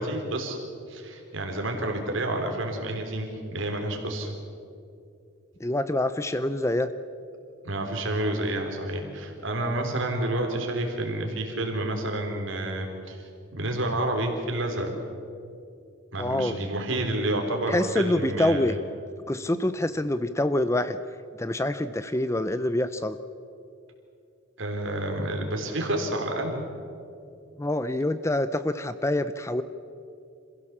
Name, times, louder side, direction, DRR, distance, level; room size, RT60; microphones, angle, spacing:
voice 1, 0.0-4.3 7.6-13.2 13.5-14.9 16.1-18.7 24.6-26.7, right 1 dB, 65° right, 3 dB, 3.6 m, -29 dB
voice 2, 5.6-6.9 16.2-16.6 17.7-18.7 19.3-21.0 21.4-23.2 27.6-29.6, left 1 dB, 15° left, 12 dB, 0.5 m, -26 dB
26.5 x 16.0 x 7.3 m, 2.5 s
head